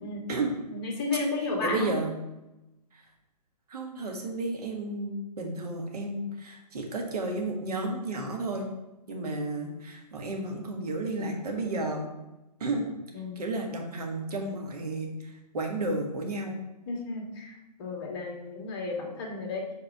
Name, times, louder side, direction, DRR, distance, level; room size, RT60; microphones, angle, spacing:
voice 1, 0.7-1.9 13.1-13.4 16.9-19.7, left 3 dB, 35° left, 0 dB, 1.6 m, -33 dB
voice 2, 1.6-2.2 2.9-3.0 3.7-8.7 9.1-12.1 12.6-12.9 13.3-16.6, right 2 dB, 65° right, 1 dB, 1.6 m, -32 dB
4.7 x 4.6 x 6.1 m, 0.97 s
hypercardioid pair, 140°, 21 cm